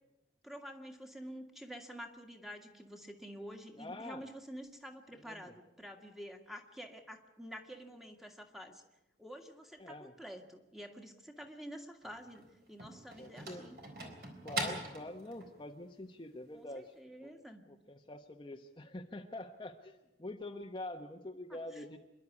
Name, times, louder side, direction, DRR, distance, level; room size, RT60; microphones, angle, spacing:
voice 1, 0.4-8.8 9.2-13.8 16.5-17.7 21.5-21.8, equal, ahead, 4 dB, 1.8 m, -49 dB
voice 2, 3.8-4.2 5.3-5.4 9.8-10.1 13.2-13.6 14.4-16.9 17.2-17.3 17.7-22.0, left 1 dB, 25° left, 3 dB, 1.0 m, -45 dB
sound 1, 12.0-15.6, right 2 dB, 60° right, 4.0 m, -42 dB
26.5 x 11.5 x 9.6 m, 0.99 s
head